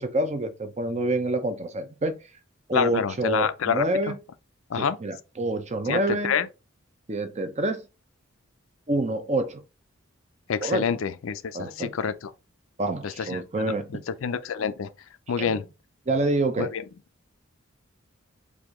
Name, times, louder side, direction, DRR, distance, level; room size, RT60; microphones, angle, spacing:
voice 1, 0.0-2.2 2.7-4.2 4.8-6.3 7.1-7.8 8.9-9.6 10.6-10.9 11.5-11.9 12.8-13.9 15.4-15.6 16.1-16.7, right 2 dB, 35° right, 0.6 m, -27 dB
voice 2, 2.7-3.9 4.7-5.0 5.9-6.5 10.5-12.1 13.0-13.4 14.1-14.9 15.3-15.6 16.6-16.8, left 6 dB, 70° left, 0.4 m, -27 dB
4.7 x 2.7 x 3.6 m
head